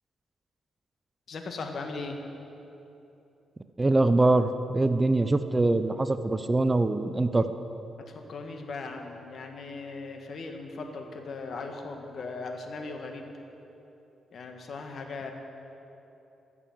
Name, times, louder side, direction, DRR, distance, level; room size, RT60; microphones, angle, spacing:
voice 1, 1.3-2.2 8.1-13.3 14.3-15.3, left 3 dB, 60° left, 4 dB, 1.2 m, -38 dB
voice 2, 3.8-7.5, right 2 dB, 20° right, 10 dB, 0.4 m, -23 dB
12.0 x 6.9 x 7.1 m, 3.0 s
cardioid pair, 100°, 0 cm